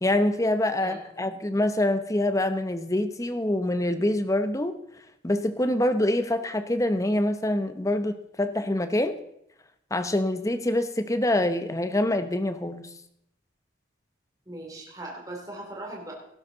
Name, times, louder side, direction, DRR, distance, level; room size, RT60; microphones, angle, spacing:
voice 1, 0.0-4.8 5.2-9.1 9.9-12.9, left 1 dB, 15° left, 10 dB, 0.8 m, -25 dB
voice 2, 14.5-16.1, right 1 dB, 20° right, -2 dB, 2.9 m, -39 dB
18.0 x 11.5 x 3.9 m, 0.75 s
head